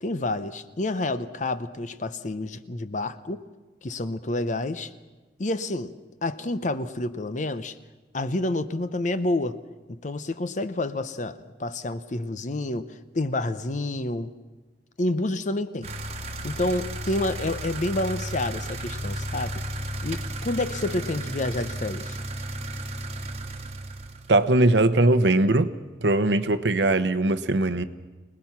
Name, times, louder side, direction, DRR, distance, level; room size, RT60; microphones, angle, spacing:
voice 1, 0.0-3.4 3.8-4.9 5.4-5.9 6.2-7.8 8.1-9.6 9.9-14.4 15.0-15.9 16.4-19.6 20.0-22.2, left 2 dB, 45° left, 0.7 m, -29 dB
sound 1, 15.8-24.4, right 1 dB, 35° right, 1.2 m, -34 dB
voice 2, 24.3-25.7 26.0-27.8, right 2 dB, 75° right, 0.9 m, -20 dB
25.5 x 19.5 x 5.9 m
head